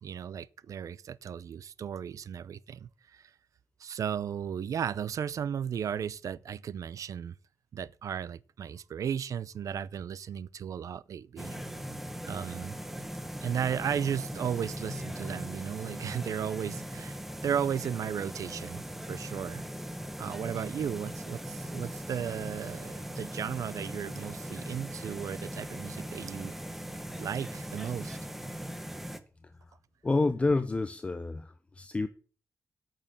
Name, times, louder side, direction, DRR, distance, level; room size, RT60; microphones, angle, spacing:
voice 1, 0.0-3.3 3.8-7.4 7.7-11.6 12.3-12.8 13.4-19.6 20.2-26.5 27.2-28.2, right 8 dB, 70° right, 0.5 m, -35 dB
sound 1, 11.4-29.2, equal, 5° right, 0.9 m, -40 dB
voice 2, 29.4-29.8 30.0-32.1, left 3 dB, 20° left, 0.6 m, -29 dB
9.0 x 6.7 x 7.5 m
wide cardioid pair, 165°, 6 cm